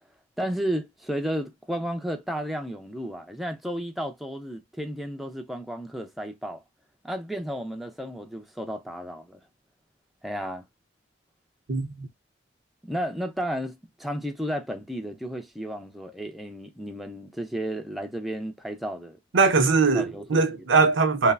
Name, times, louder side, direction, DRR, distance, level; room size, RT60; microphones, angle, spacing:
voice 1, 0.4-6.6 7.0-9.4 10.2-10.6 12.8-19.2 19.9-20.4 20.8-20.9, equal, ahead, 0.4 m, -33 dB
voice 2, 11.7-12.1 19.3-21.3, right 4 dB, 85° right, 0.6 m, -21 dB
3.1 x 2.0 x 2.3 m
head